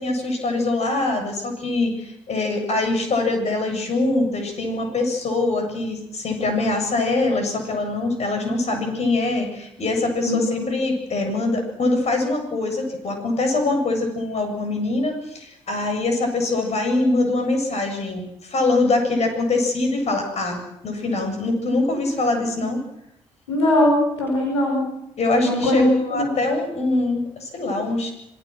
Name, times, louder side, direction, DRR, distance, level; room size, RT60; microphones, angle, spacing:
voice 1, 0.0-22.8 25.2-28.1, left 2 dB, 45° left, 4 dB, 7.7 m, -23 dB
voice 2, 10.2-10.7 23.5-24.8 25.4-26.4, left 1 dB, 80° left, 1 dB, 5.1 m, -20 dB
26.5 x 22.5 x 6.4 m, 0.80 s
figure-of-eight pair, 45°, 15 cm